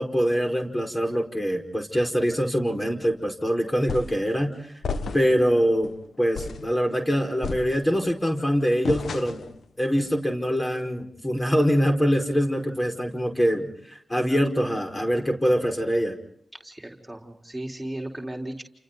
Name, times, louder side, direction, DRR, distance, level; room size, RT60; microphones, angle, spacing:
voice 1, 0.0-4.8 5.1-5.9 6.2-9.4 9.8-16.1, equal, 25° left, 3 dB, 5.1 m, -24 dB
sound 1, 3.9-4.3 4.8-5.4 5.8-6.0 6.3-6.7 7.4-8.1 8.8-9.6, left 4 dB, 75° left, 1.3 m, -32 dB
voice 2, 16.5-18.6, right 1 dB, 15° right, 0 dB, 4.0 m, -36 dB
30.0 x 28.5 x 4.0 m, 0.69 s
cardioid pair, 45°, 0 cm